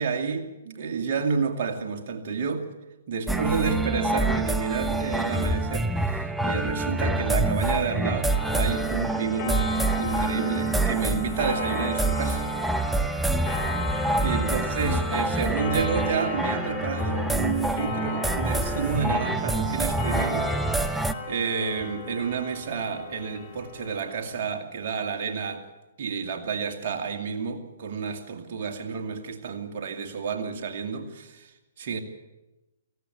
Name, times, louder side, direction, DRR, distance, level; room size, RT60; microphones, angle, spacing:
voice 1, 0.0-2.7 3.1-9.7 10.0-12.5 14.2-25.7 26.0-32.0, right 5 dB, 50° right, 2.4 m, -30 dB
sound 1, 3.3-21.1, right 2 dB, 5° right, 0.8 m, -26 dB
Clock, 8.3-24.4, left 3 dB, 30° left, 4.4 m, -36 dB
18.0 x 16.0 x 9.3 m
hypercardioid pair, 130°, 0 cm